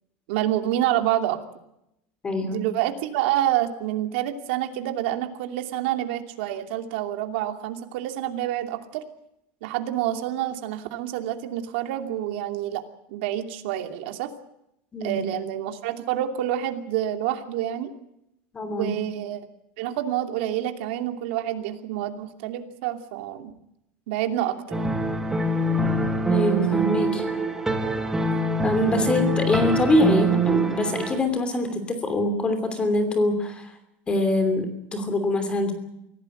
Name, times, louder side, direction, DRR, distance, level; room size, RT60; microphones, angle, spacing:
voice 1, 0.3-1.4 2.4-9.0 9.6-12.8 13.1-14.3 15.0-17.9 18.7-19.5 19.8-23.5 24.1-25.0, right 12 dB, 70° right, 6 dB, 2.7 m, -28 dB
voice 2, 2.2-2.6 14.9-15.3 18.5-18.9 26.3-27.2 28.6-33.7 34.1-35.7, left 2 dB, 15° left, 9 dB, 2.9 m, -24 dB
sound 1, 24.7-31.2, right 2 dB, 10° right, 2.1 m, -24 dB
24.5 x 16.5 x 7.9 m, 0.83 s
supercardioid pair, 160°, 6 cm